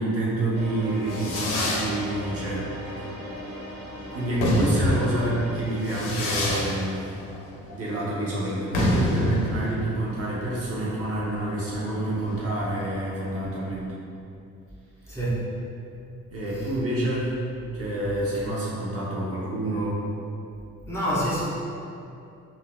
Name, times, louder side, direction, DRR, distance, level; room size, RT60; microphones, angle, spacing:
voice 1, 0.0-2.7 3.0-3.3 4.1-7.1 7.7-14.0 16.3-17.3 17.7-20.0, right 1 dB, 50° right, -7 dB, 0.8 m, -28 dB
sound 1, 0.5-6.2, right 1 dB, 80° right, 0.6 m, -38 dB
Fireworks, 0.7-12.9, left 1 dB, 90° left, 0.7 m, -28 dB
voice 2, 15.1-15.5 20.9-21.4, right 1 dB, 10° left, -10 dB, 1.0 m, -26 dB
3.8 x 2.7 x 2.3 m, 2.6 s
cardioid pair, 90°, 30 cm